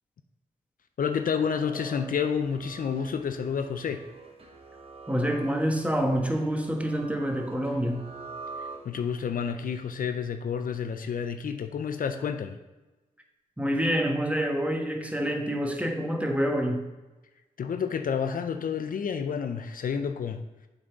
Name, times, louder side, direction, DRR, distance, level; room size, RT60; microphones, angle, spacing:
voice 1, 1.0-4.0 8.6-12.6 17.6-20.4, left 6 dB, 60° left, 8 dB, 0.5 m, -30 dB
sound 1, 1.0-9.3, right 3 dB, 40° right, 1.1 m, -45 dB
voice 2, 5.1-8.0 13.6-16.9, equal, 10° right, 3 dB, 1.2 m, -27 dB
7.4 x 4.0 x 4.6 m, 1.1 s
supercardioid pair, 45°, 16 cm